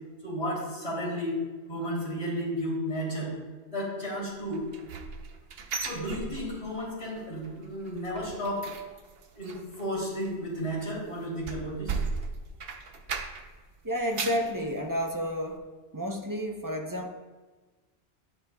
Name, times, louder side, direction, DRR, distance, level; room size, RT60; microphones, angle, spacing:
voice 1, 0.2-1.4 1.7-3.3 3.7-4.6 5.8-8.7 9.3-12.0, equal, 35° left, -9 dB, 3.0 m, -33 dB
sound 1, 4.5-6.9 7.2-7.5 7.8-13.6 13.9-14.5 15.0-15.1 15.5-15.6, right 5 dB, 65° right, 0.9 m, -37 dB
voice 2, 13.8-15.6 15.9-17.1, equal, 20° right, 2 dB, 0.6 m, -31 dB
11.0 x 8.8 x 2.3 m, 1.3 s
omnidirectional pair, 1.1 m